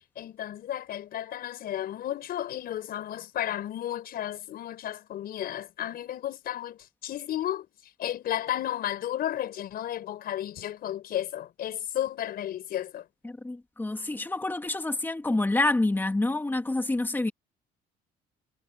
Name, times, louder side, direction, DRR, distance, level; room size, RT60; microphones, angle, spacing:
voice 1, 0.0-7.7 8.0-13.1, left 11 dB, 65° left, 5.5 m, -33 dB
voice 2, 13.2-17.3, left 2 dB, 10° left, 2.5 m, -27 dB
cardioid pair, 110°, 17 cm